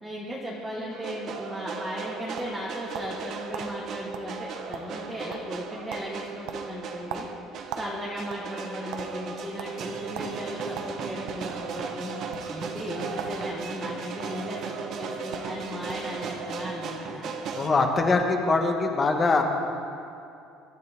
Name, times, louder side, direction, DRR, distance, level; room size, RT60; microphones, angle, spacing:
voice 1, 0.0-7.2 7.8-12.2 12.5-17.3, equal, ahead, -5 dB, 1.6 m, -36 dB
sound 1, 0.9-17.7, right 5 dB, 45° right, 1.1 m, -37 dB
sound 2, 1.8-3.2 3.5-3.7 4.1-4.3 4.6-5.1 5.3-5.6 5.9-6.1 6.5-7.9 8.2-9.1 9.6-9.7 10.1-10.3 10.7-11.5 12.2-12.4 13.1-13.4 13.7-14.3 15.0-15.1 15.3-15.5 15.9-16.1, right 9 dB, 70° right, 1.0 m, -39 dB
voice 2, 17.5-19.4, left 3 dB, 20° left, 3 dB, 1.3 m, -23 dB
23.0 x 12.5 x 3.6 m, 2.6 s
cardioid pair, 165°, 0 cm